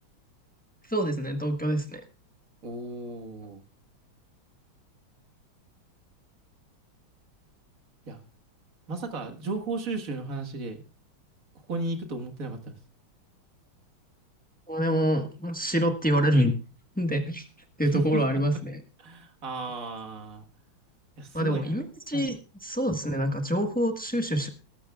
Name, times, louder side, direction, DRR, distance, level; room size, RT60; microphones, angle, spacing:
voice 1, 0.9-2.0 14.7-16.5 17.0-17.4 17.8-18.8 21.3-24.5, equal, 5° left, 4 dB, 1.0 m, -26 dB
voice 2, 2.6-3.6 8.1-8.2 8.9-10.8 11.7-12.7 17.9-18.2 19.0-20.5 21.2-21.8 22.1-22.3, right 3 dB, 45° right, 5 dB, 1.9 m, -34 dB
20.0 x 13.0 x 2.4 m, 0.32 s
omnidirectional pair, 2.2 m